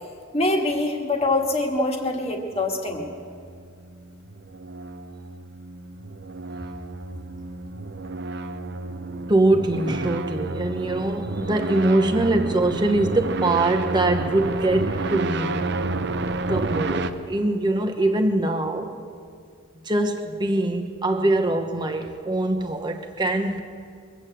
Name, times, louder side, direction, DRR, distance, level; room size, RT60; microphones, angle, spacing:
voice 1, 0.3-3.1, left 2 dB, 30° left, 1 dB, 1.6 m, -24 dB
sound 1, 2.5-17.1, right 2 dB, 50° right, 0.6 m, -30 dB
voice 2, 9.3-15.7 16.5-18.9 19.8-23.6, right 2 dB, 20° right, 5 dB, 0.9 m, -23 dB
22.5 x 8.3 x 7.7 m, 2.2 s
head